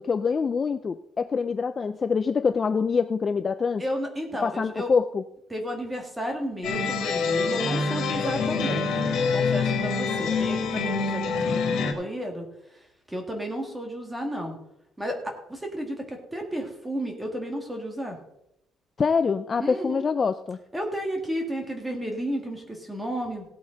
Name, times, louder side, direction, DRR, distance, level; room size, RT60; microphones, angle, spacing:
voice 1, 0.0-3.8 4.4-5.2 19.0-20.6, left 5 dB, 25° left, 11 dB, 0.3 m, -25 dB
voice 2, 3.8-4.9 5.5-9.0 9.3-11.2 11.5-12.4 13.1-14.6 15.0-15.2 15.5-18.2 19.6-20.1 20.7-23.4, equal, 5° right, 3 dB, 1.9 m, -32 dB
sound 1, 6.6-11.9, left 4 dB, 65° left, 2.4 m, -26 dB
17.0 x 8.6 x 3.9 m, 0.81 s
cardioid pair, 180°, 0 cm